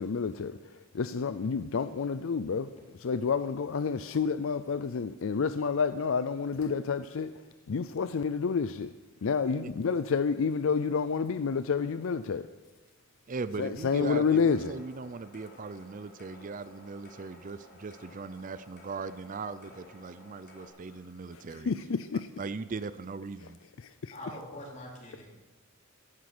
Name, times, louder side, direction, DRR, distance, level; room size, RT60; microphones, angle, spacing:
voice 1, 0.0-2.7 3.0-7.3 7.7-8.9 9.2-12.5 13.6-14.7 21.3-22.3 23.8-24.2, left 5 dB, 65° left, 0.5 m, -29 dB
voice 2, 13.3-21.7 22.4-23.6, right 4 dB, 40° right, 0.5 m, -39 dB
sound 1, 13.8-20.7, left 2 dB, 50° left, 3.6 m, -55 dB
voice 3, 24.1-25.3, left 1 dB, 35° left, 4.0 m, -43 dB
15.0 x 11.5 x 6.1 m
head